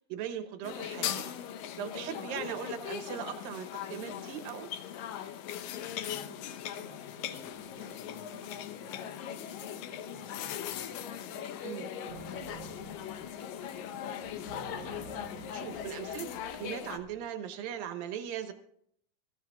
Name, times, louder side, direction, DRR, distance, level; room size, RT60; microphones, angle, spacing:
voice 1, 0.1-1.3 1.8-4.7 11.6-11.9 15.5-18.5, right 9 dB, 80° right, 7 dB, 2.8 m, -39 dB
sound 1, 0.6-17.0, left 10 dB, 80° left, 2.5 m, -39 dB
voice 2, 5.8-14.7, left 1 dB, 25° left, -3 dB, 3.8 m, -56 dB
sound 2, 7.5-16.0, left 3 dB, 50° left, 2.7 m, -54 dB
sound 3, 12.1-14.0 14.2-17.2, right 4 dB, 60° right, 6.3 m, -51 dB
24.0 x 14.5 x 2.3 m, 0.66 s
omnidirectional pair, 4.0 m